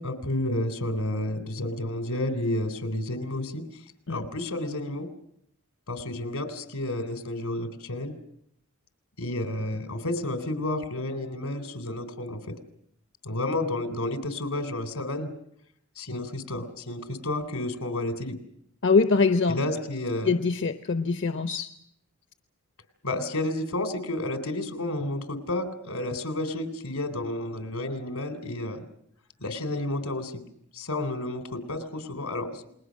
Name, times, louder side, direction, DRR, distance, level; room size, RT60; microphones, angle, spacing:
voice 1, 0.0-3.6 4.1-5.1 5.9-8.1 9.2-12.5 13.2-15.3 16.0-18.4 19.5-20.3 23.0-28.8 29.4-30.4 30.7-32.6, left 1 dB, 85° left, 8 dB, 3.6 m, -31 dB
voice 2, 18.8-19.6 20.2-21.7, left 4 dB, 55° left, 9 dB, 0.9 m, -23 dB
29.0 x 21.0 x 6.4 m, 0.71 s
head